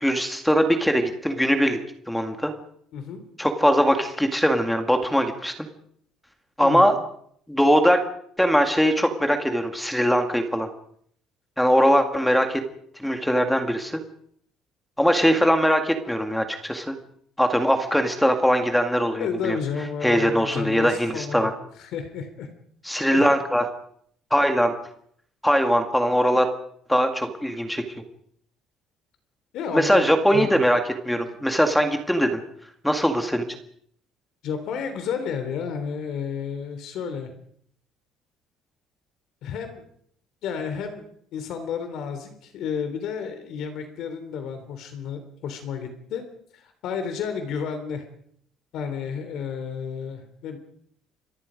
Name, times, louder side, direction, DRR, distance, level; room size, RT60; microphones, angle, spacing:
voice 1, 0.0-1.8 2.1-2.5 3.4-5.5 6.6-7.0 7.5-8.0 8.4-10.7 11.6-12.6 13.0-14.0 15.0-16.9 17.4-19.6 20.0-21.5 22.9-23.6 24.3-24.7 25.4-26.5 26.9-27.8 29.7-30.8 31.1-32.4 32.8-33.4, equal, ahead, 6 dB, 1.9 m, -21 dB
voice 2, 2.9-3.2 6.6-6.9 19.2-22.5 23.1-23.3 29.5-30.6 34.4-37.3 39.4-39.8 40.4-41.0 41.3-46.3 46.5-48.1 48.7-50.6, left 6 dB, 55° left, 8 dB, 3.3 m, -31 dB
28.5 x 24.0 x 5.2 m, 0.66 s
cardioid pair, 175°, 0 cm